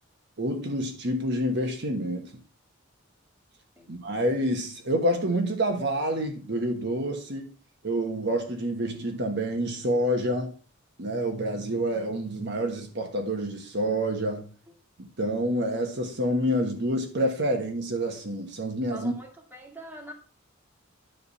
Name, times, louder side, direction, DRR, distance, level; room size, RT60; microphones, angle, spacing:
voice 1, 0.4-2.3 3.9-7.5 7.8-10.5 11.0-14.5 15.2-19.1, right 1 dB, 60° right, 1.4 m, -28 dB
voice 2, 18.9-20.1, right 1 dB, 10° right, 2.1 m, -43 dB
10.0 x 3.9 x 6.9 m
head